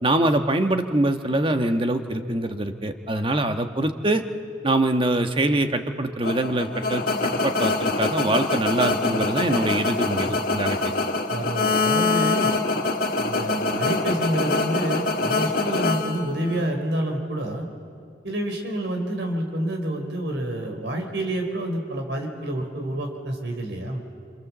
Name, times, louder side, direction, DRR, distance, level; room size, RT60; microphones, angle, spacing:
voice 1, 0.0-4.2 4.6-10.8, right 1 dB, 30° right, 6 dB, 1.3 m, -24 dB
sound 1, 6.2-16.7, left 3 dB, 55° left, 1.6 m, -24 dB
voice 2, 11.3-12.6 13.1-17.7 18.2-24.0, right 1 dB, 80° right, 3 dB, 4.3 m, -28 dB
27.5 x 27.5 x 7.4 m, 2.4 s
head